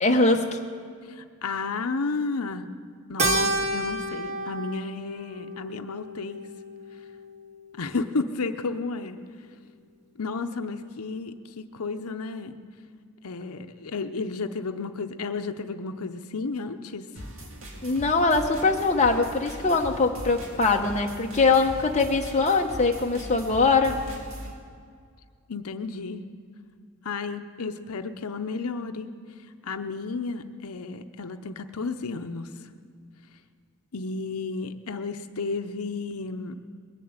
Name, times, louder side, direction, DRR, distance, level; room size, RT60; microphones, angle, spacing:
voice 1, 0.0-0.5 17.8-24.0, left 3 dB, 30° left, 2 dB, 0.9 m, -22 dB
voice 2, 1.0-2.6 3.1-6.5 7.8-9.2 10.2-12.6 13.2-17.1 25.5-26.2 27.0-29.1 29.6-32.5 33.9-36.6, left 4 dB, 90° left, 8 dB, 0.7 m, -32 dB
Keyboard (musical), 3.2-7.8, right 1 dB, 30° right, 1.0 m, -30 dB
sound 1, 17.2-24.5, equal, 65° right, 2.2 m, -40 dB
21.0 x 7.6 x 8.8 m, 2.1 s
head